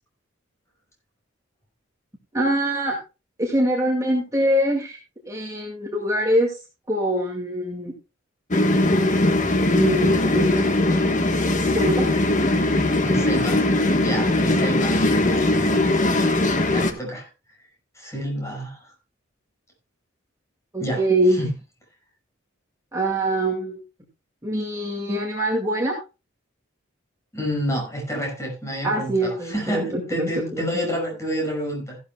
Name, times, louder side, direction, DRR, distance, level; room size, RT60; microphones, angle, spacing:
voice 1, 2.3-3.0 3.4-5.0 5.3-6.6 6.9-7.9 9.7-10.7 11.6-12.1 20.7-21.4 22.9-23.8 24.4-26.0 28.8-29.9 30.1-30.8, right 1 dB, 15° right, -1 dB, 2.1 m, -23 dB
sound 1, 8.5-16.9, left 2 dB, 40° left, 1.3 m, -20 dB
voice 2, 13.0-13.6 13.9-16.4 16.7-17.3 18.0-18.9 20.8-21.0 21.3-21.5 27.3-32.0, equal, 15° left, 1 dB, 5.7 m, -29 dB
15.0 x 12.0 x 2.3 m, 0.29 s
head